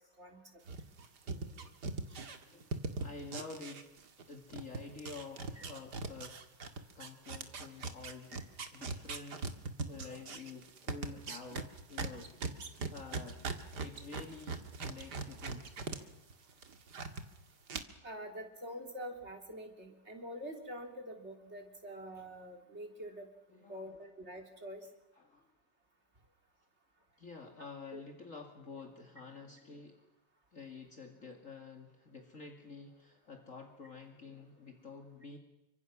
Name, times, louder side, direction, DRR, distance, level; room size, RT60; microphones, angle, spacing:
sound 1, 0.7-4.2 4.5-16.0 16.3-17.2 17.7-17.8, right 4 dB, 70° right, 2.5 m, -40 dB
voice 1, 1.2-1.7 2.4-3.8 4.3-6.4 6.9-9.5 9.9-13.4 13.8-15.7 23.5-23.9 25.2-25.5 27.2-30.0 30.5-35.4, left 4 dB, 45° left, 2 dB, 2.7 m, -49 dB
voice 2, 18.0-23.3 23.7-24.8 27.9-28.0, equal, 40° right, 4 dB, 3.6 m, -46 dB
30.0 x 25.5 x 6.1 m, 0.97 s
omnidirectional pair, 1.9 m